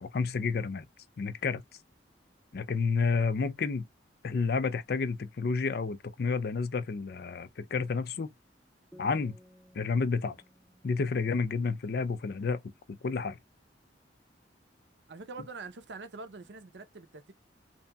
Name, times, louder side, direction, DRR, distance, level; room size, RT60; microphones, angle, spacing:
voice 1, 0.0-0.8 1.2-1.6 2.5-3.8 4.2-8.3 9.0-9.4 9.7-10.4 10.8-12.6 13.0-13.4, left 4 dB, 60° left, 0.4 m, -30 dB
sound 1, 8.9-12.4, left 1 dB, ahead, 0.7 m, -59 dB
voice 2, 15.1-17.3, right 3 dB, 75° right, 0.6 m, -44 dB
2.9 x 2.7 x 2.2 m
head